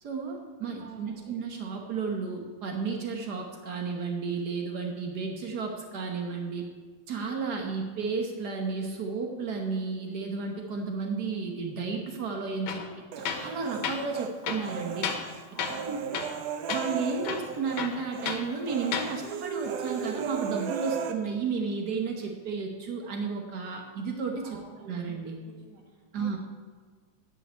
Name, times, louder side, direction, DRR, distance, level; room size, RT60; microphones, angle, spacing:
voice 1, 0.0-6.6 7.1-12.8 13.2-15.1 15.8-16.2 16.7-25.4 26.1-26.4, right 4 dB, 90° right, 2 dB, 0.8 m, -33 dB
voice 2, 0.8-1.3 15.5-16.1 24.4-26.4, right 3 dB, 55° right, -1 dB, 3.1 m, -51 dB
Tools, 12.7-12.9 13.3-13.5 13.8-14.0 14.4-15.3 15.6-15.9 16.1-16.4 16.7-16.9 17.2-18.5 18.8-19.1, left 7 dB, 75° left, 2.3 m, -33 dB
Human voice, 13.1-14.3 14.6-17.9 18.1-18.3 18.7-21.1, right 7 dB, 70° right, 1.6 m, -36 dB
10.5 x 6.4 x 8.7 m, 1.6 s
omnidirectional pair, 3.5 m